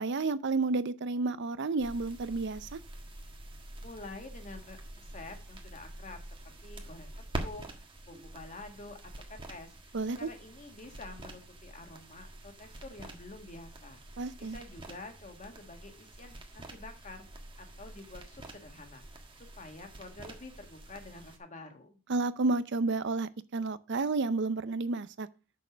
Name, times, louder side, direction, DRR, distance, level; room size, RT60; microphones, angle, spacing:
voice 1, 0.0-2.8 9.9-10.3 14.2-14.6 22.1-25.3, right 3 dB, 60° right, 0.6 m, -31 dB
sound 1, 1.8-21.4, right 1 dB, 25° right, 1.5 m, -46 dB
voice 2, 3.8-6.2 6.4-7.1 7.4-9.0 9.5-17.3 17.6-22.0, left 2 dB, 35° left, 1.7 m, -48 dB
6.7 x 6.4 x 6.2 m
head